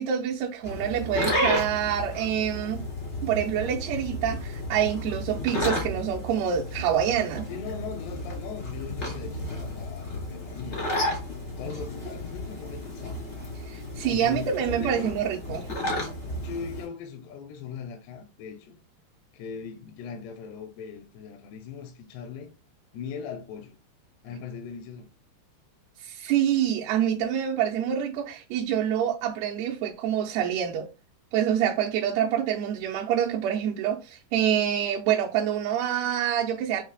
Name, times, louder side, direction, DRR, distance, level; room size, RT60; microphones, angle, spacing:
voice 1, 0.0-2.8 3.2-7.5 13.7-15.7 24.3-24.4 26.0-30.9 31.3-36.8, right 9 dB, 85° right, 2.4 m, -26 dB
sound 1, 0.6-16.8, left 1 dB, 55° left, 0.7 m, -32 dB
voice 2, 7.5-11.1 11.5-13.2 14.1-15.1 16.4-18.8 19.3-22.5 22.9-23.8 24.2-25.1, left 6 dB, 85° left, 2.7 m, -39 dB
7.3 x 3.2 x 2.2 m
omnidirectional pair, 4.9 m